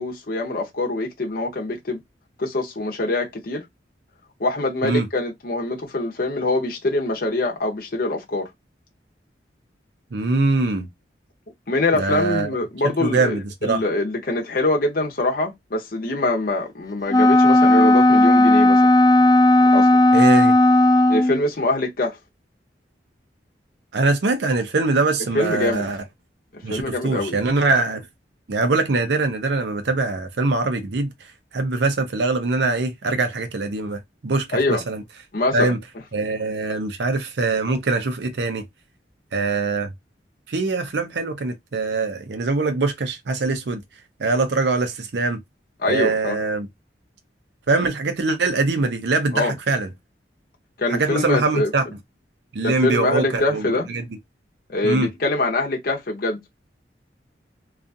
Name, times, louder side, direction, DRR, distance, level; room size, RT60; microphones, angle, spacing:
voice 1, 0.0-2.0 2.4-3.7 4.4-8.5 11.7-18.9 19.7-20.0 21.1-22.2 25.3-25.9 26.7-27.4 34.5-34.8 35.3-35.7 45.8-46.4 49.3-49.5 50.8-51.7 52.6-53.9 54.7-56.4, left 2 dB, 55° left, 0.7 m, -24 dB
voice 2, 10.1-10.9 11.9-12.5 13.0-13.8 20.1-20.5 23.9-26.0 26.6-28.1 28.5-31.1 31.5-35.0 35.5-35.8 36.1-38.7 39.3-39.9 40.5-43.8 44.2-45.4 45.9-46.7 47.7-49.9 50.9-51.8 52.5-54.0 54.8-55.1, right 3 dB, 70° right, 0.5 m, -23 dB
Wind instrument woodwind instrument, 17.1-21.4, left 1 dB, 20° left, 0.3 m, -14 dB
2.4 x 2.4 x 2.6 m
head